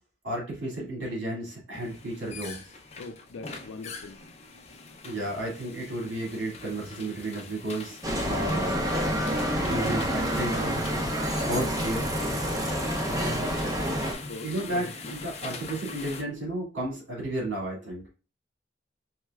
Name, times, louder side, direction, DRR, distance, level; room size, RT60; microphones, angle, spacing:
voice 1, 0.2-2.7 5.0-9.0 9.5-10.8 11.4-12.1 14.4-18.1, right 1 dB, 85° right, 2.1 m, -33 dB
sound 1, 1.7-16.2, left 4 dB, 35° left, 0.4 m, -43 dB
voice 2, 3.0-4.2 14.1-15.2, left 3 dB, 90° left, 0.4 m, -42 dB
Bicycle, 8.0-14.1, equal, 20° right, 0.5 m, -28 dB
4.3 x 3.1 x 2.3 m
head